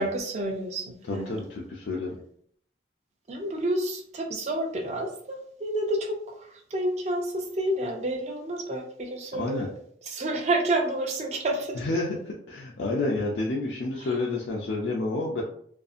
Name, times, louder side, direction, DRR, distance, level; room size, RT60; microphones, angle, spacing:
voice 1, 0.0-1.4 3.3-9.7 10.1-11.8, right 1 dB, 40° right, 3 dB, 0.4 m, -29 dB
voice 2, 1.1-2.2 9.3-9.7 11.8-15.4, left 2 dB, 85° left, -3 dB, 0.4 m, -29 dB
2.6 x 2.4 x 2.4 m, 0.64 s
head